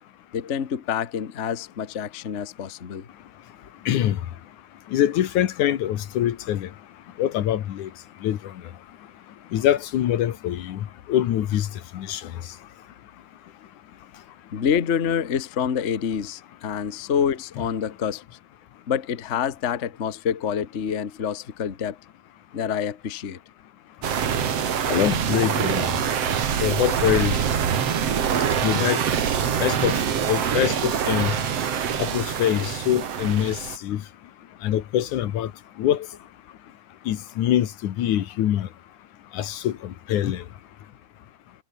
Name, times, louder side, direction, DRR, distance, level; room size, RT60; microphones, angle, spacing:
voice 1, 0.3-3.1 14.5-18.2 18.9-22.0 22.5-23.4, left 8 dB, 40° left, 1.1 m, -27 dB
voice 2, 3.9-4.2 4.9-6.7 7.2-7.9 8.2-8.4 9.5-10.8 11.1-11.7 11.9-12.3 24.9-25.9 26.6-27.4 28.6-29.0 29.6-29.9 30.3-31.3 32.0-34.0 34.6-35.5 35.8-36.1 37.1-38.7 39.3-40.4, left 11 dB, 90° left, 2.9 m, -24 dB
sound 1, 24.0-33.8, right 8 dB, 60° right, 3.0 m, -25 dB
omnidirectional pair, 3.4 m